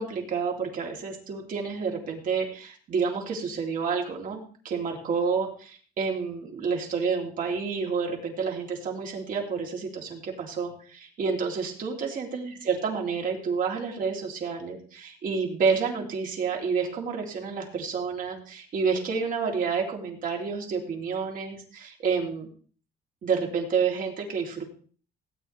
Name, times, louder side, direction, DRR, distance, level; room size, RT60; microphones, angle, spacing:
voice 1, 0.0-22.5 23.2-24.6, right 5 dB, 55° right, 1 dB, 3.3 m, -29 dB
17.0 x 9.4 x 3.4 m, 0.42 s
cardioid pair, 110°, 17 cm